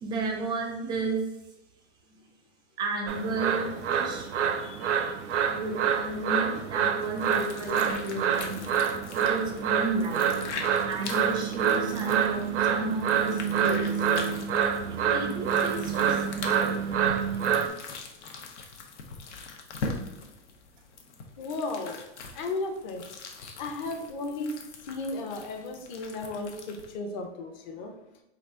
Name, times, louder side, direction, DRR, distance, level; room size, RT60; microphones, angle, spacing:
voice 1, 0.0-1.2 2.8-4.3 5.5-8.7 9.1-10.3 10.9-13.8 15.0-16.8, right 3 dB, 15° right, 2 dB, 0.4 m, -32 dB
sound 1, 3.1-17.7, right 8 dB, 90° right, 0.6 m, -27 dB
voice 2, 4.6-5.1 5.3-5.4 21.4-22.0 22.3-23.1 23.6-24.5 24.9-27.9, left 2 dB, 40° left, 5 dB, 0.8 m, -35 dB
sound 2, 7.0-26.9, left 4 dB, 75° left, 0.9 m, -42 dB
4.0 x 2.5 x 4.4 m, 0.91 s
hypercardioid pair, 145°, 35 cm